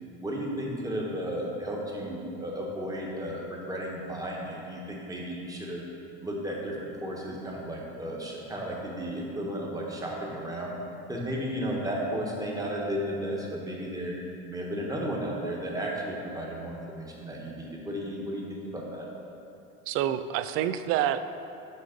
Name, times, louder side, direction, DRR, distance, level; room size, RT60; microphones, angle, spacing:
voice 1, 0.2-5.8 6.2-10.7 11.1-14.1 14.5-19.1, equal, 10° right, -2 dB, 1.3 m, -34 dB
voice 2, 19.9-21.3, right 11 dB, 50° right, 12 dB, 0.4 m, -27 dB
6.5 x 5.1 x 5.2 m, 2.7 s
supercardioid pair, 110°, 29 cm